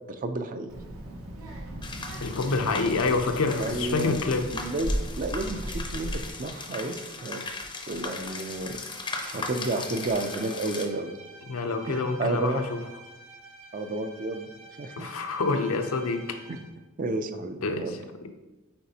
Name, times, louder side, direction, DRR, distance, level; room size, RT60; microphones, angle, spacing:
voice 1, 0.1-0.7 3.6-4.2 4.5-7.4 7.9-8.8 9.2-11.1 11.9-12.6 13.7-14.5 14.8-15.1 16.5-16.6 17.0-18.0, right 2 dB, 40° right, 8 dB, 0.4 m, -31 dB
Child speech kid speaking, 0.7-6.3, equal, 85° right, 0.9 m, -36 dB
sound 1, 1.8-10.9, left 3 dB, 20° left, 0.5 m, -38 dB
voice 2, 2.2-4.4 11.5-12.8 15.0-16.4 17.6-18.0, left 3 dB, 80° left, 6 dB, 0.6 m, -27 dB
Bowed string instrument, 8.1-16.7, right 2 dB, 65° right, 1.9 m, -49 dB
8.8 x 4.1 x 2.8 m, 1.1 s
head